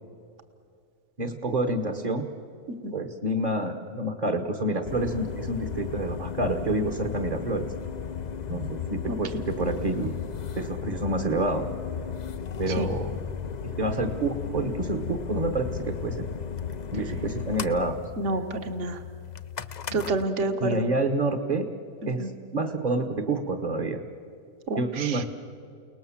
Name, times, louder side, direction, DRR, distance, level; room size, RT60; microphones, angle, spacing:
voice 1, 1.2-2.3 2.9-7.7 8.5-10.1 10.6-11.6 12.6-13.2 13.6-16.3 16.9-18.0 19.9-20.0 20.6-21.7 22.1-24.0 24.8-25.2, right 2 dB, 30° right, 4 dB, 1.2 m, -28 dB
sound 1, 4.8-20.3, left 7 dB, 55° left, 0.4 m, -35 dB
voice 2, 18.2-19.0 19.9-20.8 22.2-22.3 24.7-25.2, right 2 dB, 50° right, 7 dB, 1.7 m, -28 dB
29.5 x 19.0 x 7.3 m, 2.5 s
omnidirectional pair, 1.6 m